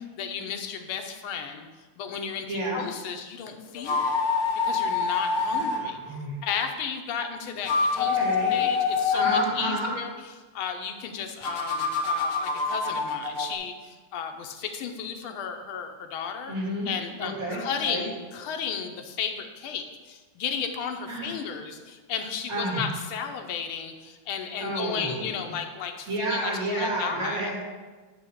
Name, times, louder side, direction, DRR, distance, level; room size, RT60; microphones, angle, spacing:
voice 1, 0.2-1.7 2.0-4.2 4.6-6.0 6.4-10.1 10.5-16.5 16.8-27.5, left 7 dB, 90° left, 5 dB, 1.7 m, -34 dB
voice 2, 2.5-2.8 5.4-6.4 8.2-8.5 9.1-9.9 16.5-16.9 17.2-17.6 17.8-18.0 21.1-21.3 22.5-22.8 24.6-25.5 26.1-27.6, right 1 dB, 75° right, -4 dB, 3.2 m, -30 dB
sound 1, 3.8-5.8 7.5-9.5 11.4-13.6, left 4 dB, 45° left, 0.9 m, -26 dB
10.0 x 3.4 x 6.4 m, 1.3 s
omnidirectional pair, 2.2 m